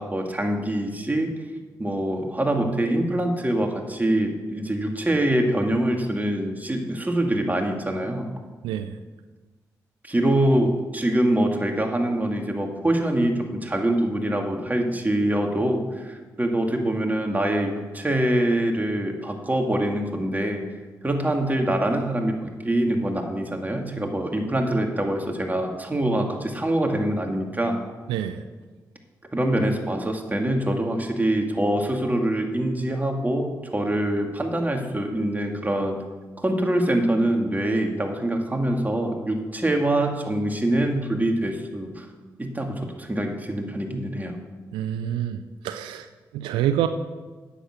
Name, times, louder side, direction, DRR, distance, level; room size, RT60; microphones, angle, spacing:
voice 1, 0.0-1.3 1.8-8.3 10.0-20.6 21.0-27.8 29.3-36.0 36.4-42.1 42.4-44.4, right 1 dB, 20° right, 3 dB, 2.4 m, -24 dB
voice 2, 28.1-28.4 44.7-45.4 45.6-46.1 46.3-46.9, right 11 dB, 90° right, 10 dB, 0.5 m, -26 dB
10.0 x 8.2 x 6.6 m, 1.3 s
supercardioid pair, 45°, 8 cm